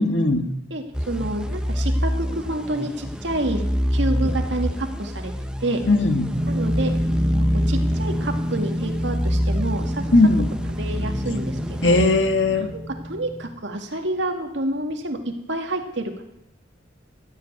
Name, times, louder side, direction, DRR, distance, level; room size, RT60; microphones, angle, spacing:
voice 1, 0.0-0.5 5.9-6.3 10.1-10.4 11.8-12.7, left 2 dB, 65° left, 6 dB, 1.6 m, -18 dB
voice 2, 0.7-3.6 3.9-5.3 5.6-5.8 6.5-6.9 7.3-10.1 10.8-12.0 12.5-16.2, right 1 dB, 65° right, 4 dB, 2.1 m, -28 dB
sound 1, 0.9-12.8, equal, 5° right, 0.8 m, -26 dB
sound 2, 6.3-13.5, equal, 30° right, 2.4 m, -28 dB
14.5 x 8.3 x 9.5 m, 0.81 s
head